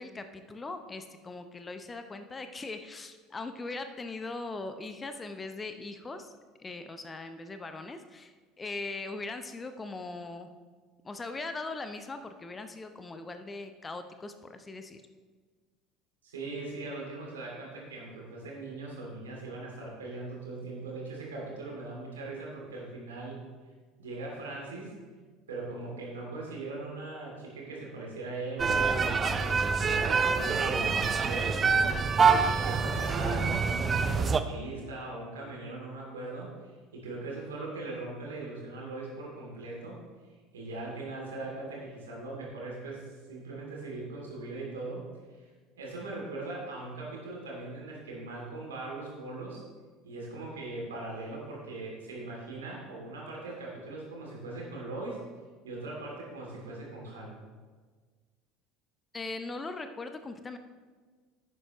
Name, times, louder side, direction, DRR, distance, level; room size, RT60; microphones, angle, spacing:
voice 1, 0.0-10.5 11.0-15.0 59.1-60.6, left 3 dB, 20° left, 9 dB, 0.7 m, -40 dB
voice 2, 16.2-23.4 24.0-24.9 25.5-32.1 32.6-40.0 40.5-45.0 45.3-45.5 45.8-49.6 50.0-55.2 55.6-57.3, right 2 dB, 75° right, -3 dB, 2.6 m, -40 dB
sound 1, 28.6-34.4, right 5 dB, 30° right, 0.6 m, -26 dB
10.5 x 9.3 x 3.1 m, 1.5 s
figure-of-eight pair, 65°, 0 cm